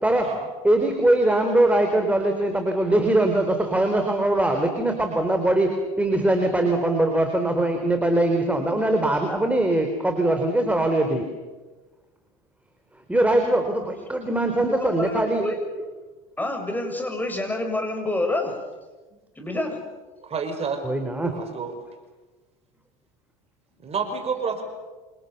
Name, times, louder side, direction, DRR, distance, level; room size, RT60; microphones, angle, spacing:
voice 1, 0.6-11.3 13.1-15.4 20.8-21.3, right 1 dB, 10° right, 5 dB, 4.2 m, -21 dB
voice 2, 14.8-15.6 16.4-18.6 19.4-19.9, left 2 dB, 10° left, 3 dB, 7.0 m, -28 dB
voice 3, 20.2-20.9 21.3-21.7 23.8-24.6, right 5 dB, 35° right, 6 dB, 5.6 m, -29 dB
28.0 x 27.0 x 6.9 m, 1.2 s
hypercardioid pair, 80°, 18 cm